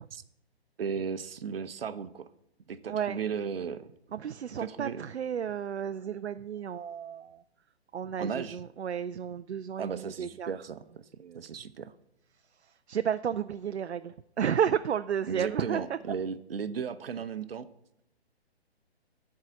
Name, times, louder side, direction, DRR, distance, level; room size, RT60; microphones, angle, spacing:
voice 1, 0.8-2.3 2.7-3.9 4.6-5.0 8.2-8.6 9.8-10.8 11.3-11.9 15.3-17.7, right 6 dB, 60° right, 13 dB, 0.8 m, -35 dB
voice 2, 4.2-4.9 5.1-7.3 7.9-8.3 8.8-9.9 10.2-10.5 12.9-14.0 14.4-15.8, right 8 dB, 85° right, 10 dB, 0.5 m, -31 dB
9.6 x 4.8 x 7.5 m, 0.79 s
figure-of-eight pair, 135°, 32 cm